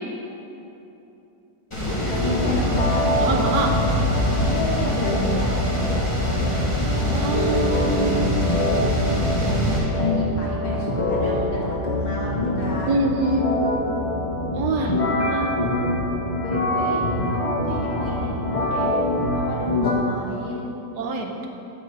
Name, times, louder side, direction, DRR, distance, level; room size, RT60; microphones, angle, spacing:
sound 1, 1.7-9.8, left 1 dB, 15° left, 1.9 m, -25 dB
voice 1, 1.9-3.1 4.4-6.1 8.9-9.2 9.6-13.1 14.8-14.9 16.4-17.0 17.5-19.0 19.3-20.7, left 1 dB, 55° left, -4 dB, 1.4 m, -33 dB
sound 2, 2.1-19.9, left 1 dB, 35° left, 0.5 m, -24 dB
voice 2, 3.2-3.7 6.9-8.2 12.9-13.6 14.5-15.6 21.0-21.5, right 2 dB, 70° right, 2 dB, 1.3 m, -25 dB
8.9 x 6.4 x 4.0 m, 2.9 s
omnidirectional pair, 2.0 m